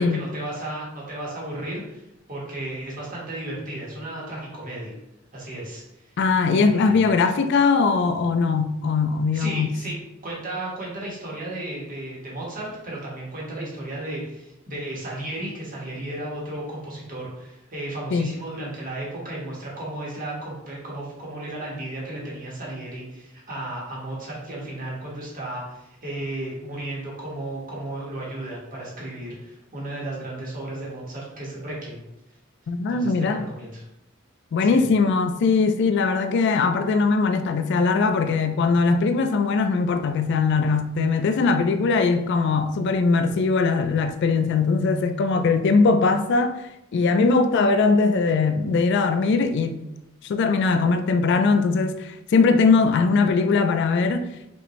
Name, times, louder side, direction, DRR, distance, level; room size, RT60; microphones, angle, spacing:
voice 1, 0.0-2.0 2.3-4.9 5.3-5.8 6.5-7.0 9.3-9.9 10.2-32.0 32.9-33.8 34.6-34.8, right 1 dB, 40° right, 1.4 m, -34 dB
voice 2, 6.2-9.7 18.1-18.3 32.7-33.5 34.5-46.6 46.9-49.8 50.2-54.3, left 4 dB, 60° left, 0.3 m, -20 dB
5.3 x 2.6 x 3.1 m
head